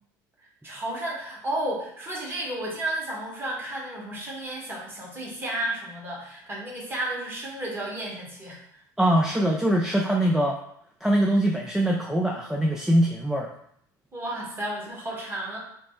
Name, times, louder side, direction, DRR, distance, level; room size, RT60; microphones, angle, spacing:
voice 1, 0.6-8.6 14.1-15.6, right 1 dB, 20° right, -3 dB, 1.4 m, -32 dB
voice 2, 9.0-10.6 11.0-13.5, right 1 dB, 5° right, 0 dB, 0.4 m, -22 dB
3.2 x 2.0 x 4.1 m, 0.69 s
hypercardioid pair, 80°, 10 cm